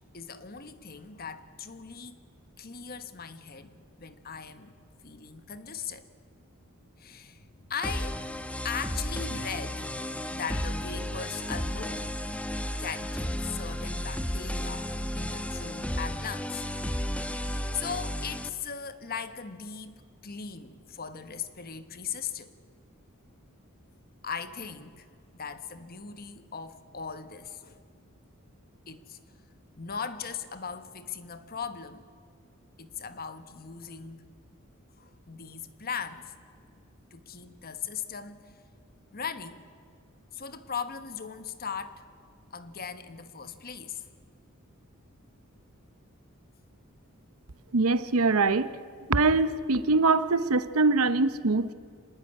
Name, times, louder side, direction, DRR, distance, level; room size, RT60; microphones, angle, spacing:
voice 1, 0.1-2.2 2.6-4.8 5.0-6.1 7.0-12.1 12.8-14.9 15.1-16.6 17.4-22.5 24.2-25.1 25.3-27.8 28.9-29.2 29.8-32.1 32.8-34.2 35.0-36.3 37.1-38.5 39.1-39.6 40.3-42.1 42.5-44.0, left 6 dB, 45° left, 1.4 m, -39 dB
sound 1, 7.8-18.5, equal, 5° left, 1.1 m, -33 dB
voice 2, 47.7-48.7 49.1-51.7, right 3 dB, 85° right, 0.9 m, -23 dB
25.5 x 19.0 x 10.0 m
head